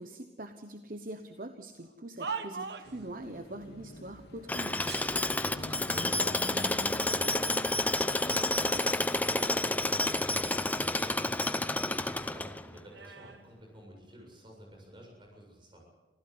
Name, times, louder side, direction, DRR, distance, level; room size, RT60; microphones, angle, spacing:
voice 1, 0.0-4.8, right 1 dB, 50° right, 7 dB, 1.1 m, -43 dB
sound 1, 1.8-3.1 4.8-5.7 6.5-6.6 7.3-8.0 8.5-9.9 10.3-12.0 12.2-14.4 15.1-15.4, right 5 dB, 70° right, 1.4 m, -45 dB
Car passing by / Traffic noise roadway noise / Engine, 2.8-10.2, left 1 dB, 65° left, 2.2 m, -46 dB
Tools, 4.5-12.8, left 2 dB, 10° left, 0.7 m, -30 dB
voice 2, 4.9-15.8, equal, 25° right, 0 dB, 7.6 m, -52 dB
26.0 x 15.5 x 8.0 m, 1.2 s
head